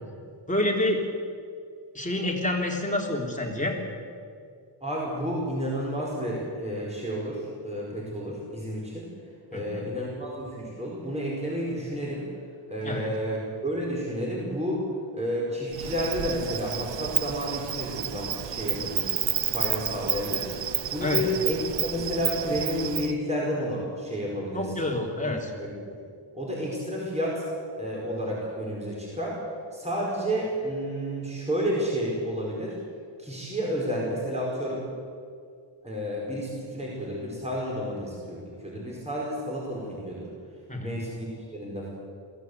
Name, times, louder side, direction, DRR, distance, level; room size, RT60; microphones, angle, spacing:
voice 1, 0.5-1.0 1.9-3.8 9.5-9.8 12.8-13.1 21.0-21.2 24.5-25.5 40.7-41.0, left 1 dB, 15° left, 0 dB, 3.5 m, -28 dB
voice 2, 4.8-9.1 9.5-12.3 12.7-14.8 15.1-19.1 19.5-20.5 20.9-24.7 25.2-25.3 25.6-25.9 26.3-27.4 27.8-29.4 29.7-32.8 33.2-34.8 35.8-40.3 40.8-41.9, equal, 15° right, -4 dB, 5.1 m, -31 dB
Insect, 15.7-23.1, right 10 dB, 65° right, 0.8 m, -30 dB
22.5 x 15.5 x 8.2 m, 2.2 s
wide cardioid pair, 125°, 48 cm